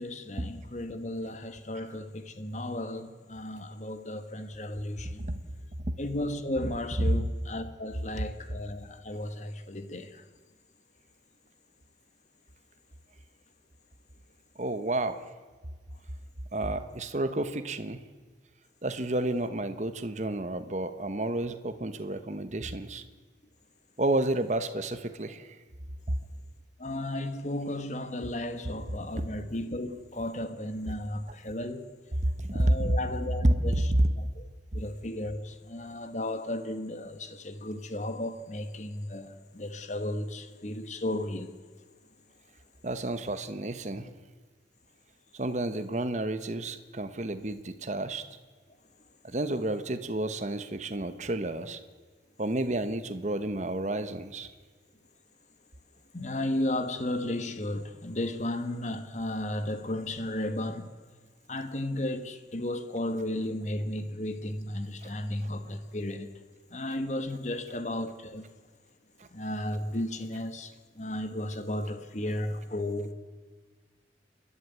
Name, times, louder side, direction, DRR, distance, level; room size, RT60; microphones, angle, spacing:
voice 1, 0.0-5.3 6.0-10.2 26.8-31.9 32.5-33.7 34.2-34.5 34.7-41.6 56.1-60.9 61.5-66.3 66.7-68.5 69.3-73.1, left 1 dB, 40° left, 1.3 m, -34 dB
voice 2, 14.6-15.2 16.5-18.0 18.8-23.0 24.0-25.5 32.4-32.9 33.4-34.1 42.8-44.1 45.3-48.2 49.2-51.8 52.4-54.5, right 1 dB, 40° right, 1.0 m, -30 dB
28.5 x 11.5 x 9.4 m
head